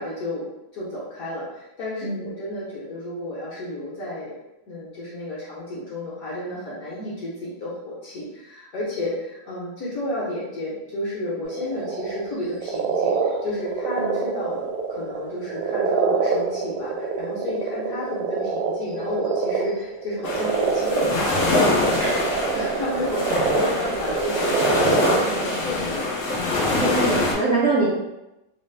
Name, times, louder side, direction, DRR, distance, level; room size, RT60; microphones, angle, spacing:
voice 1, 0.0-4.3 4.7-22.1 22.5-26.1, left 1 dB, 60° left, -7 dB, 1.0 m, -32 dB
sound 1, 11.5-12.3 12.5-25.6, right 5 dB, 85° right, 1.3 m, -25 dB
sound 2, 20.2-27.3, left 2 dB, 85° left, 0.6 m, -24 dB
voice 2, 26.8-27.9, right 3 dB, 65° right, -8 dB, 0.8 m, -23 dB
3.3 x 2.0 x 3.1 m, 0.94 s
omnidirectional pair, 2.1 m